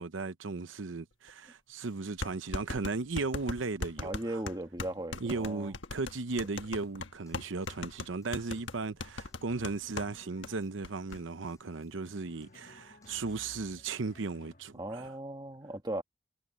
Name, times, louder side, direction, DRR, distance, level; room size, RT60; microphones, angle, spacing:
voice 1, 0.0-4.4 5.2-15.1, right 3 dB, 85° right, 0.8 m, -36 dB
sound 1, 1.3-1.4 2.2-10.1 10.4-10.5 10.8-11.2, left 3 dB, 75° left, 1.4 m, -39 dB
voice 2, 4.0-5.7 14.8-16.0, right 1 dB, 20° right, 1.5 m, -37 dB
Drum kit / Snare drum / Bass drum, 6.3-14.0, left 1 dB, 15° left, 6.6 m, -66 dB
Drum, 9.5-11.0 12.0-15.1, left 1 dB, 45° left, 1.9 m, -57 dB
head